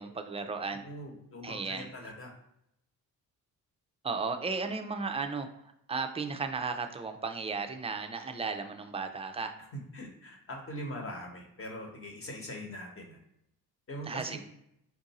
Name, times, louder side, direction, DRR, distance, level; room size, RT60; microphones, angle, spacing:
voice 1, 0.0-0.8 1.4-1.9 4.0-5.5 5.9-9.5 14.1-14.4, right 4 dB, 15° right, 6 dB, 0.3 m, -35 dB
voice 2, 0.7-2.3 9.6-13.2 13.9-14.4, equal, 40° left, 2 dB, 1.0 m, -42 dB
4.6 x 2.5 x 4.0 m, 0.78 s
cardioid pair, 115°, 36 cm